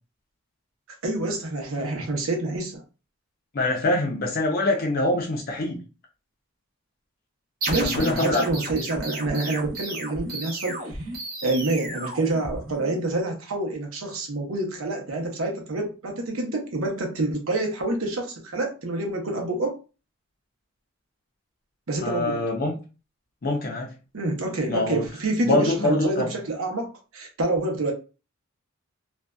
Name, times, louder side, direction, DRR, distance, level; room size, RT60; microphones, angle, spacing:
voice 1, 1.0-2.8 7.7-10.8 11.4-19.8 21.9-22.4 24.1-27.9, right 2 dB, 80° right, 2 dB, 0.7 m, -27 dB
voice 2, 3.5-5.8 7.8-8.4 22.0-22.8 23.4-23.9 24.7-25.0 25.4-26.3, left 2 dB, 45° left, 0 dB, 0.5 m, -24 dB
sound 1, 7.6-13.0, right 1 dB, 45° right, 0.8 m, -33 dB
2.5 x 2.2 x 2.2 m, 0.33 s
head